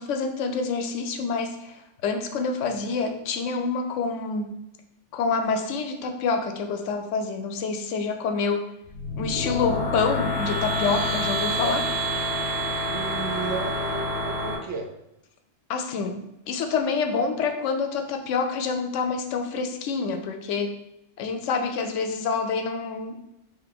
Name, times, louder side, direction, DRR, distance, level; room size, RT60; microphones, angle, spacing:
voice 1, 0.0-4.6 5.1-8.7 9.2-11.9 15.7-20.7 21.2-23.2, left 4 dB, 80° left, 6 dB, 0.9 m, -27 dB
sound 1, 8.8-14.6, equal, 90° right, 1.7 m, -27 dB
voice 2, 12.9-14.9, right 5 dB, 70° right, 2 dB, 1.0 m, -34 dB
3.5 x 3.2 x 3.7 m, 0.86 s
omnidirectional pair, 1.3 m